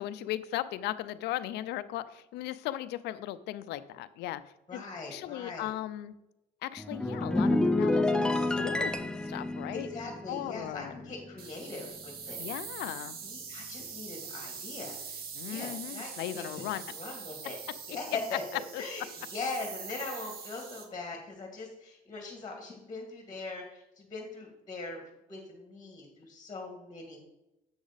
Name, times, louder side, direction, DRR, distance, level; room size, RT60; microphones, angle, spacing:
voice 1, 0.0-4.4 4.7-4.8 5.1-6.1 6.6-9.9 10.3-10.9 12.4-13.2 15.4-16.8 18.7-18.8, left 13 dB, 80° left, 13 dB, 0.5 m, -37 dB
voice 2, 4.7-5.7 9.7-12.8 13.2-17.6 17.9-25.0 25.3-27.2, left 3 dB, 25° left, 2 dB, 1.9 m, -41 dB
sound 1, 6.8-11.4 11.7-12.0, left 2 dB, 5° left, 0.6 m, -29 dB
sound 2, 11.4-20.8, right 6 dB, 65° right, 1.4 m, -43 dB
7.8 x 6.2 x 4.0 m, 0.93 s
cardioid pair, 110°, 17 cm